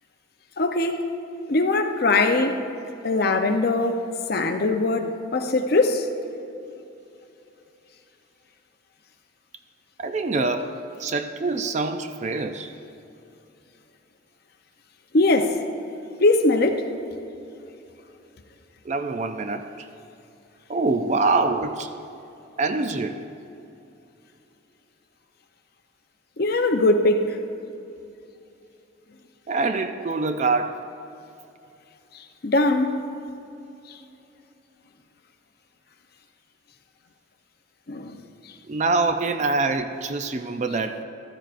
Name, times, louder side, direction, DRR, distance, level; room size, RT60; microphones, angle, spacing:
voice 1, 0.6-1.0 1.5-2.6 3.0-6.1 15.1-15.6 16.2-16.8 26.4-27.4 32.4-33.0 37.9-38.1, left 2 dB, 50° left, 0.6 m, -21 dB
voice 2, 10.0-10.7 11.0-12.7 18.9-19.9 20.7-21.9 22.6-23.2 29.5-30.8 38.7-41.0, right 3 dB, 35° right, 0.4 m, -25 dB
15.0 x 13.0 x 2.5 m
head